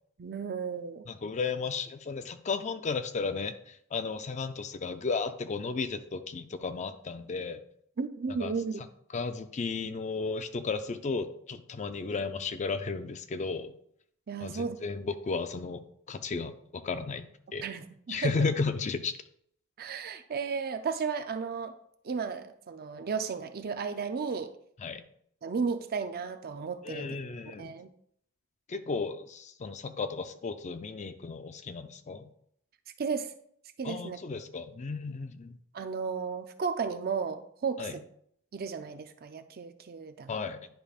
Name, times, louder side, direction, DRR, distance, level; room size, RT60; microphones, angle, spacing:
voice 1, 0.2-1.1 8.0-8.8 14.3-14.8 17.6-18.3 19.8-21.7 22.0-24.5 25.4-27.2 27.6-27.9 33.0-33.3 33.8-34.2 35.7-38.0 38.5-40.4, right 5 dB, 45° right, 9 dB, 0.5 m, -34 dB
voice 2, 1.1-7.6 8.3-8.5 9.1-13.7 14.4-17.7 18.1-19.1 24.8-25.0 26.8-27.7 28.7-32.3 33.8-35.6 37.8-38.0 40.3-40.7, left 4 dB, 35° left, 10 dB, 0.4 m, -34 dB
10.5 x 5.1 x 2.4 m, 0.68 s
head